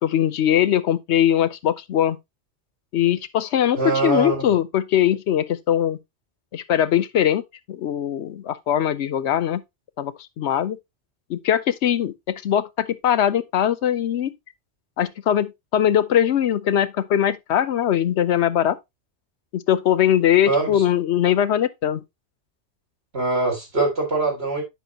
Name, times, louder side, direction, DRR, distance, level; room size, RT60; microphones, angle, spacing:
voice 1, 0.0-2.2 2.9-6.0 6.5-7.4 7.7-9.6 10.0-10.8 11.3-14.3 15.0-18.8 19.5-22.0, left 10 dB, 75° left, 1.0 m, -21 dB
voice 2, 3.7-4.5 20.5-20.8 23.1-24.6, right 3 dB, 60° right, 3.9 m, -23 dB
10.0 x 5.6 x 2.8 m
omnidirectional pair, 1.2 m